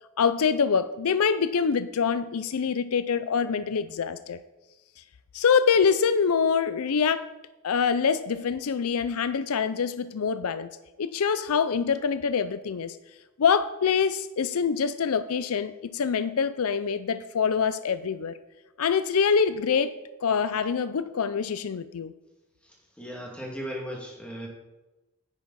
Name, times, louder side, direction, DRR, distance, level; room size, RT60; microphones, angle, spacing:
voice 1, 0.2-4.4 5.3-7.3 7.6-10.7 11.0-13.0 13.4-18.4 18.8-19.9 20.2-22.1, left 6 dB, 80° left, 14 dB, 0.5 m, -25 dB
voice 2, 22.6-24.5, equal, 5° left, -2 dB, 2.6 m, -37 dB
9.8 x 9.7 x 4.2 m, 1.1 s
head